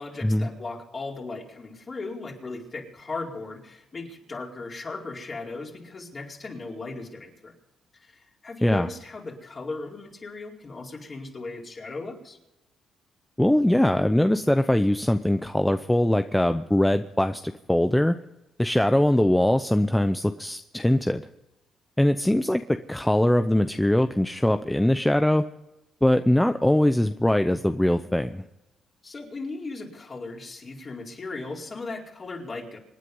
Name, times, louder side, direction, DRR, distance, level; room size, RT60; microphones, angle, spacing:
voice 1, 0.0-7.5 8.0-12.4 29.0-32.8, left 3 dB, 35° left, -1 dB, 4.5 m, -37 dB
voice 2, 13.4-18.2 18.6-21.2 22.0-22.6 22.9-25.4 26.0-28.4, left 1 dB, 5° left, 9 dB, 0.7 m, -22 dB
26.5 x 9.9 x 5.5 m, 0.95 s
cardioid pair, 90°, 0 cm